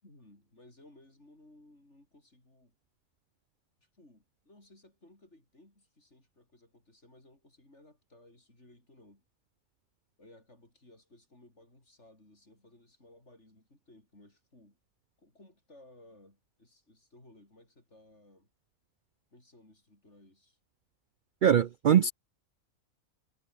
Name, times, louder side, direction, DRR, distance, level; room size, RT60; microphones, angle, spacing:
voice 1, 0.0-2.7 3.8-9.2 10.2-14.8 15.2-18.5 19.3-20.6, left 1 dB, 55° left, 7.4 m, -59 dB
voice 2, 21.4-22.1, right 9 dB, 85° right, 0.4 m, -22 dB
omnidirectional pair, 1.5 m